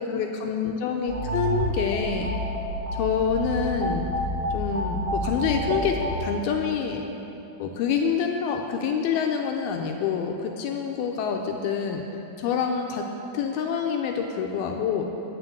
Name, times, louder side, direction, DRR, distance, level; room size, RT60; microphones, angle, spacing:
voice 1, 0.0-2.3 3.0-4.1 4.5-7.0 7.6-12.0 12.4-13.0 13.3-15.0, left 6 dB, 80° left, 2 dB, 2.3 m, -27 dB
sound 1, 1.1-6.1, equal, 25° right, 1.5 m, -29 dB
9.5 x 6.1 x 7.9 m, 2.9 s
omnidirectional pair, 4.7 m